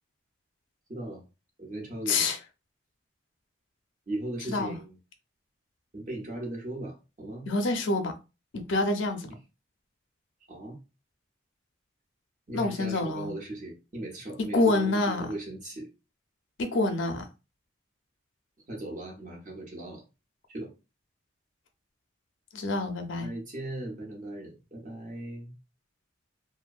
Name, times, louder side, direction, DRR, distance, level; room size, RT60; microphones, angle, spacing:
voice 1, 0.9-1.2 1.6-2.3 4.1-5.0 5.9-7.5 10.5-10.8 12.5-15.9 18.7-20.0 20.5-20.7 23.2-25.5, right 1 dB, 40° right, 0.7 m, -38 dB
voice 2, 2.1-2.4 4.5-4.8 7.5-8.1 8.5-9.3 12.5-13.3 14.5-15.3 16.6-17.3 22.5-23.3, left 2 dB, 70° left, 0.5 m, -27 dB
2.6 x 2.1 x 2.3 m
head